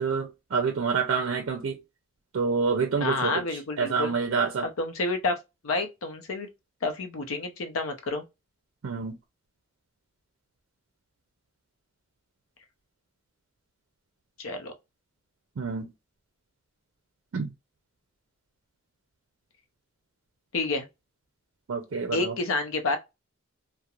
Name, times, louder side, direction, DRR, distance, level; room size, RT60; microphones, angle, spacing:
voice 1, 0.0-1.8 2.3-3.4 3.8-4.7 8.8-9.1 15.6-15.9 17.3-17.5 21.7-22.3, right 5 dB, 70° right, 0.4 m, -27 dB
voice 2, 3.0-4.1 4.8-5.4 5.6-6.5 6.8-8.2 14.4-14.7 20.5-20.9 22.1-23.0, left 3 dB, 90° left, 0.6 m, -29 dB
2.4 x 2.1 x 2.9 m
head